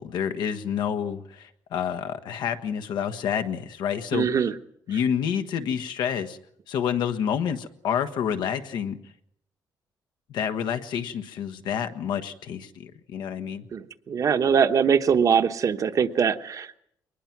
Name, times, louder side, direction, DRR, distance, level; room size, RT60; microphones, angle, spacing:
voice 1, 0.0-4.2 4.9-6.4 6.7-9.0 10.3-13.7, left 8 dB, 85° left, 8 dB, 1.3 m, -28 dB
voice 2, 4.1-4.5 13.7-16.8, right 7 dB, 50° right, 10 dB, 1.1 m, -22 dB
22.5 x 20.0 x 6.0 m, 0.73 s
cardioid pair, 115°, 7 cm